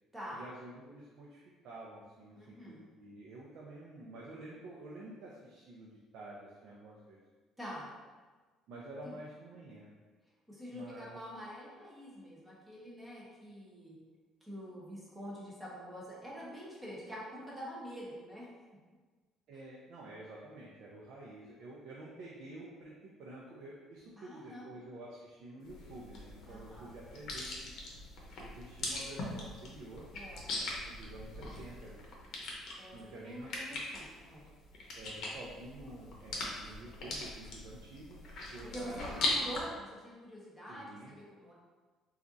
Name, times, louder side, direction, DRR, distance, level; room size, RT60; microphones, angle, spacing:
voice 1, 0.3-7.2 8.7-9.9 10.7-11.2 19.5-27.7 28.4-30.1 30.6-32.0 32.9-33.8 34.9-39.1 40.7-41.1, right 2 dB, 65° right, -4 dB, 0.5 m, -49 dB
voice 2, 2.3-2.8 7.6-7.9 9.0-9.1 10.5-14.0 14.4-18.5 24.2-24.8 26.5-26.9 30.1-30.5 32.8-34.4 38.6-41.5, equal, 10° right, -6 dB, 0.8 m, -46 dB
sound 1, 25.6-39.6, left 2 dB, 60° left, 0.7 m, -40 dB
4.1 x 2.4 x 2.6 m, 1.4 s
cardioid pair, 140°, 0 cm